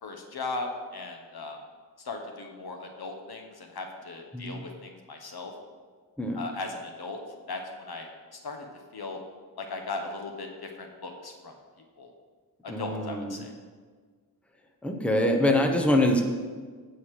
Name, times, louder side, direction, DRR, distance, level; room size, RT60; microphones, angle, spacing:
voice 1, 0.0-1.6 2.0-5.5 6.3-7.2 7.5-8.7 8.9-9.2 9.6-11.5 12.0-12.1 12.6-13.5, left 3 dB, 70° left, 3 dB, 1.4 m, -37 dB
voice 2, 12.7-13.5 14.8-16.2, left 1 dB, 5° left, 3 dB, 0.9 m, -24 dB
15.5 x 5.6 x 5.0 m, 1.5 s
wide cardioid pair, 140°, 39 cm